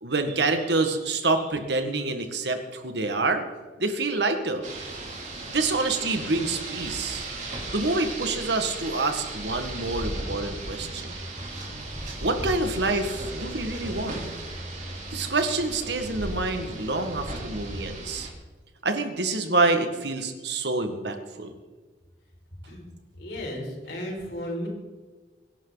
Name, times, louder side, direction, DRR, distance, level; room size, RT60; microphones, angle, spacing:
voice 1, 0.0-3.4 3.8-4.7 5.5-7.3 7.7-11.1 12.2-14.2 15.1-18.3 18.8-21.5, right 3 dB, 70° right, 6 dB, 1.8 m, -27 dB
Rain, 4.6-18.3, right 2 dB, 40° right, 3.4 m, -36 dB
voice 2, 23.2-24.7, equal, 70° left, -1 dB, 5.3 m, -34 dB
23.5 x 11.5 x 4.1 m, 1.3 s
head